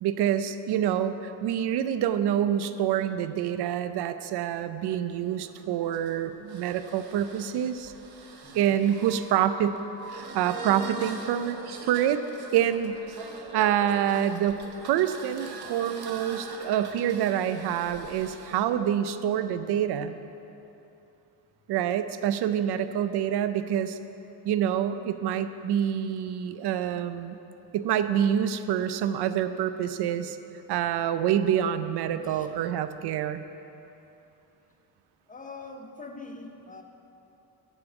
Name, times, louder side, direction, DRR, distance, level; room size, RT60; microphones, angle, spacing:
voice 1, 0.0-7.9 8.5-9.8 10.1-11.6 11.8-12.2 12.5-13.0 13.5-14.6 14.9-20.1 21.7-24.0 24.4-27.4 27.7-30.4 30.7-33.4, right 10 dB, 90° right, 11 dB, 0.6 m, -26 dB
sound 1, 4.9-18.6, right 4 dB, 70° right, 1.2 m, -43 dB
voice 2, 8.4-8.8 32.2-32.5 35.3-36.8, left 3 dB, 20° left, 4 dB, 0.7 m, -43 dB
11.5 x 5.3 x 8.2 m, 2.9 s
cardioid pair, 165°, 38 cm